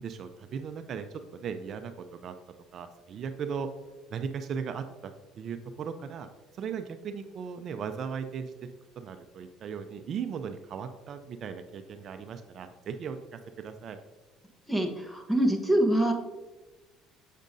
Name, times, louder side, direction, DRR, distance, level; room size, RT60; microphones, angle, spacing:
voice 1, 0.0-2.4 2.7-3.7 4.1-6.3 6.6-8.7 9.0-14.0, right 6 dB, 50° right, 9 dB, 0.4 m, -37 dB
voice 2, 14.7-16.1, right 1 dB, 5° left, 3 dB, 1.0 m, -25 dB
7.2 x 6.6 x 2.6 m, 1.1 s
cardioid pair, 105°, 0 cm